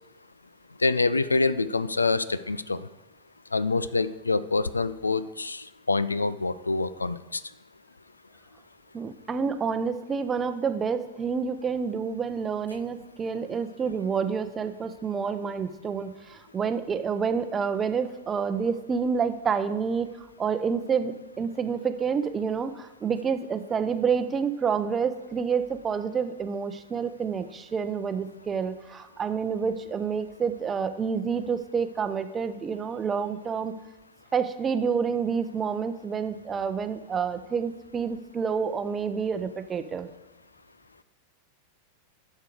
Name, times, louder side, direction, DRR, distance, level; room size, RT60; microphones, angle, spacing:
voice 1, 0.8-2.9 3.5-7.4, left 3 dB, 80° left, 16 dB, 0.3 m, -26 dB
voice 2, 8.9-33.7 34.3-40.1, right 6 dB, 20° right, 10 dB, 0.6 m, -28 dB
11.0 x 6.6 x 4.7 m, 1.0 s
figure-of-eight pair, 90°, 0 cm